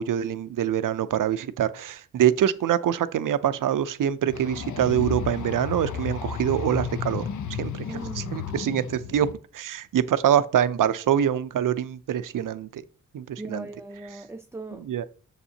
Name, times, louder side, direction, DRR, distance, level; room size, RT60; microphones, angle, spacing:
voice 1, 0.0-7.2 7.6-9.3 9.5-12.8 13.1-13.7 14.8-15.1, right 10 dB, 70° right, 0.6 m, -25 dB
sound 1, 4.3-9.3, left 7 dB, 60° left, 0.7 m, -33 dB
voice 2, 7.9-8.5 13.4-14.9, right 2 dB, 10° right, 0.4 m, -39 dB
7.0 x 6.6 x 2.8 m
cardioid pair, 85°, 34 cm